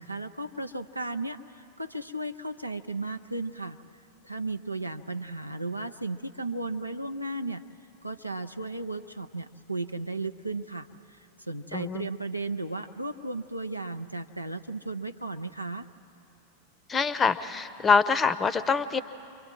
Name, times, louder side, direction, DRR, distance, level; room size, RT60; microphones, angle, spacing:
voice 1, 0.0-3.8 4.2-7.6 8.0-15.9, right 2 dB, 90° right, 8 dB, 0.6 m, -35 dB
voice 2, 11.7-12.1 16.9-19.0, left 5 dB, 20° left, 16 dB, 0.7 m, -25 dB
29.5 x 23.0 x 4.5 m, 2.8 s
figure-of-eight pair, 90°, 0 cm